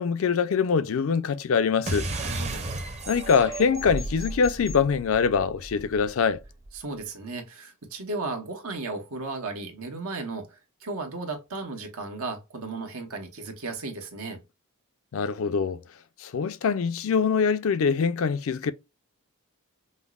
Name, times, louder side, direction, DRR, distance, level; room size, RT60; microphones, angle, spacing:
voice 1, 0.0-2.1 3.1-6.4 15.1-15.8 16.2-18.7, left 6 dB, 70° left, 0.4 m, -24 dB
sound 1, 1.9-6.8, right 2 dB, 30° right, 0.7 m, -34 dB
voice 2, 2.2-2.7 6.7-14.4, right 3 dB, 85° right, 1.1 m, -35 dB
5.3 x 2.0 x 2.3 m
head